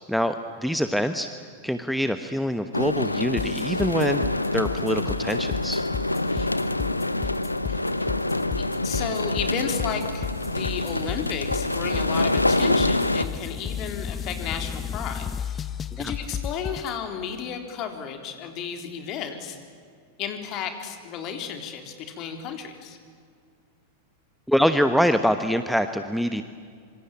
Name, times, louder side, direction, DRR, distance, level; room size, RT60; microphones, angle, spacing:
voice 1, 0.6-1.3 1.6-4.2 4.5-5.8 16.0-16.1 24.5-26.4, equal, ahead, 9 dB, 1.1 m, -24 dB
sound 1, 2.7-13.3, left 2 dB, 85° left, 1.0 m, -26 dB
sound 2, 2.8-12.6, right 2 dB, 55° left, 5.4 m, -45 dB
sound 3, 3.4-16.9, left 8 dB, 20° left, 0.9 m, -33 dB
voice 2, 8.6-15.6 16.0-19.6 20.2-23.0, left 7 dB, 40° left, 6 dB, 3.8 m, -33 dB
26.0 x 25.0 x 8.9 m, 2.2 s
figure-of-eight pair, 90°, 0 cm